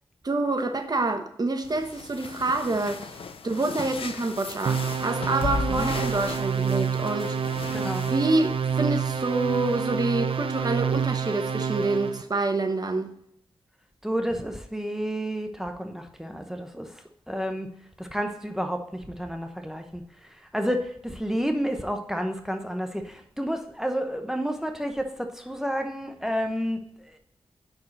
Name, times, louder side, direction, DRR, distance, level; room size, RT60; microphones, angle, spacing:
voice 1, 0.2-7.5 8.1-13.1, right 2 dB, 40° right, 1.0 m, -27 dB
sound 1, 1.6-9.8, left 4 dB, 70° left, 0.6 m, -37 dB
sound 2, 4.7-12.2, right 6 dB, 65° right, 0.6 m, -28 dB
voice 2, 7.7-8.1 14.0-16.9 17.3-17.7 18.0-20.0 20.5-26.8, equal, 5° right, 0.8 m, -30 dB
5.6 x 4.9 x 6.4 m
cardioid pair, 65°, 10 cm